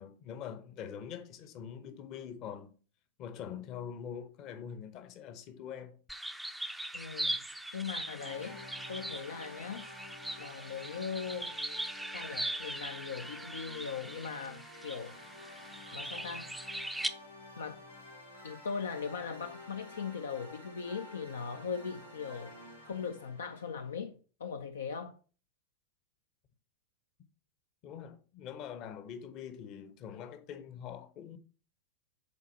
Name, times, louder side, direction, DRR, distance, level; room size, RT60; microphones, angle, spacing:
voice 1, 0.0-2.7 3.2-6.0 27.8-31.4, left 8 dB, 40° left, 0.8 m, -44 dB
sound 1, 6.1-17.1, right 1 dB, 5° right, 0.5 m, -40 dB
voice 2, 6.9-7.4 7.7-8.6 8.9-9.9 10.4-11.5 12.1-15.2 15.9-16.8 17.6-17.8 18.4-22.6 22.8-25.2, left 6 dB, 65° left, 0.4 m, -39 dB
sound 2, 8.2-24.0, left 1 dB, 90° left, 3.6 m, -51 dB
6.9 x 4.1 x 4.3 m
figure-of-eight pair, 90°, 0 cm